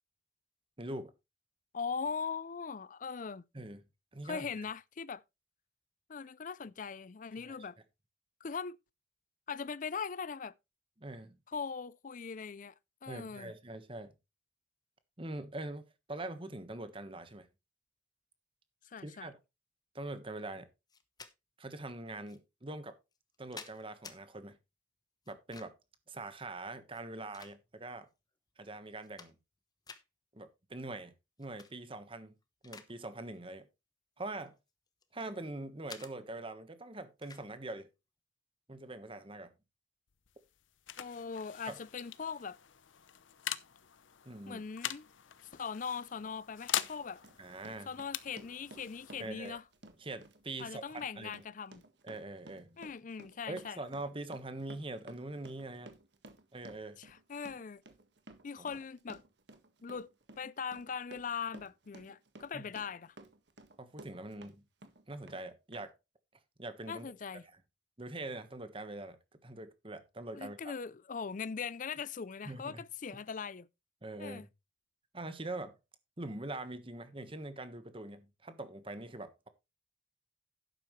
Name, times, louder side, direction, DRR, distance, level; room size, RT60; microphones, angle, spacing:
voice 1, 0.8-1.1 3.5-3.8 4.1-4.6 7.4-7.6 11.0-11.4 13.1-14.1 15.2-17.5 19.0-19.4 19.9-20.7 21.6-22.9 23.4-24.6 25.3-25.8 26.1-28.1 28.6-29.3 30.3-31.1 31.4-32.3 32.6-33.7 34.2-34.5 35.1-37.9 38.7-39.5 41.7-41.8 44.2-44.6 47.4-47.9 49.2-49.6 50.0-51.4 52.0-52.8 53.5-55.9 56.5-57.0 58.6-58.7 62.5-62.7 63.8-64.6 65.1-65.9 66.6-67.1 68.0-69.2 69.4-70.7 72.4-72.8 73.1-73.2 74.0-74.5 75.1-75.8 76.2-79.5, right 2 dB, 30° right, 1.3 m, -43 dB
voice 2, 1.7-3.4 4.2-5.2 6.1-7.8 8.4-8.8 9.5-10.5 11.5-12.7 13.0-13.5 18.8-19.3 41.0-42.6 44.5-45.1 45.5-47.2 47.9-49.6 50.6-51.8 52.8-53.8 57.0-57.8 58.4-59.2 59.8-60.1 60.4-63.1 66.9-67.4 70.3-73.7 74.2-74.5, left 6 dB, 45° left, 0.5 m, -40 dB
sound 1, 20.9-21.3 22.3-22.4 23.1-24.2 25.3-25.9 26.9-27.9 28.5-28.6 28.9-29.6 29.9-30.1 31.4-31.7 32.1-32.9 33.2-33.5 34.2-35.3 35.9-36.1 37.2-37.5, left 5 dB, 20° left, 1.0 m, -51 dB
sound 2, 40.1-51.4, left 11 dB, 90° left, 0.8 m, -43 dB
Run, 46.2-46.4 46.8-64.5 64.8-65.4 65.7-65.8, right 2 dB, 65° right, 1.6 m, -55 dB
11.5 x 9.2 x 3.2 m
head